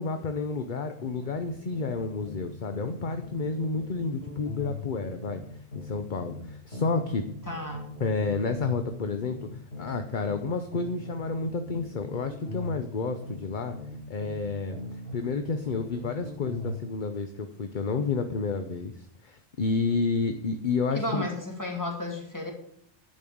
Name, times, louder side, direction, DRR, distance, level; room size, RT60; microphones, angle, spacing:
voice 1, 0.0-5.4 5.7-7.2 8.0-13.7 14.1-21.3, left 4 dB, 50° left, 7 dB, 0.9 m, -30 dB
sound 1, 1.0-2.5 2.7-6.4 6.7-10.4 10.7-14.4 14.7-16.8, left 2 dB, 65° left, 2.8 m, -39 dB
voice 2, 7.5-7.9 20.9-22.5, left 1 dB, 15° left, 1 dB, 2.6 m, -33 dB
11.0 x 5.4 x 8.5 m, 0.67 s
omnidirectional pair, 1.1 m